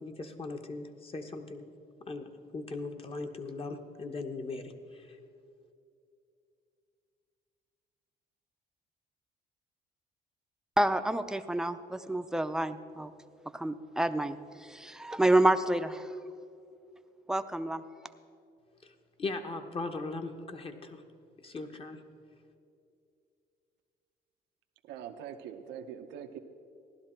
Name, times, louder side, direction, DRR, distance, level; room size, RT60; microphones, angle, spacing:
voice 1, 0.0-1.6 2.1-2.3 2.5-5.2 18.8-18.9 19.2-21.0 21.4-22.0, left 3 dB, 30° left, 6 dB, 1.1 m, -39 dB
voice 2, 10.8-13.1 13.5-16.1 17.3-17.8, right 1 dB, 5° right, 10 dB, 0.5 m, -28 dB
voice 3, 24.8-26.4, right 8 dB, 90° right, 6 dB, 0.8 m, -43 dB
15.5 x 11.5 x 4.4 m, 2.5 s
cardioid pair, 100°, 17 cm